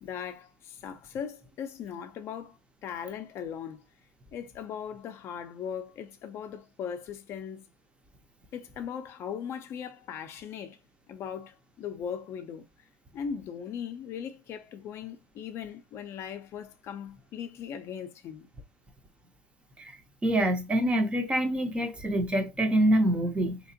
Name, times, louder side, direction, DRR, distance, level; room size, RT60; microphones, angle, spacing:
voice 1, 0.0-3.8 4.3-7.7 8.5-10.8 11.1-12.6 13.1-18.5, left 8 dB, 45° left, 0.4 m, -39 dB
voice 2, 20.2-23.6, right 1 dB, 15° right, 0.5 m, -25 dB
3.5 x 2.9 x 2.7 m
cardioid pair, 145°, 7 cm